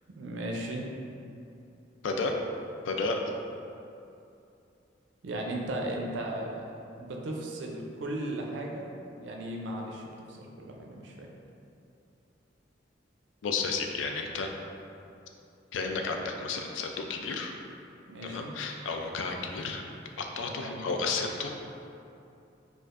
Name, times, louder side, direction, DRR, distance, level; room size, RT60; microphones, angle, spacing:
voice 1, 0.2-0.9 5.2-6.7 7.0-11.3 18.1-18.5 20.5-20.8, right 1 dB, 70° right, 0 dB, 0.5 m, -36 dB
voice 2, 2.8-3.2 13.4-14.5 15.7-17.5 18.2-19.8 20.2-21.5, left 4 dB, 80° left, 3 dB, 0.4 m, -32 dB
4.5 x 2.4 x 2.4 m, 2.7 s
head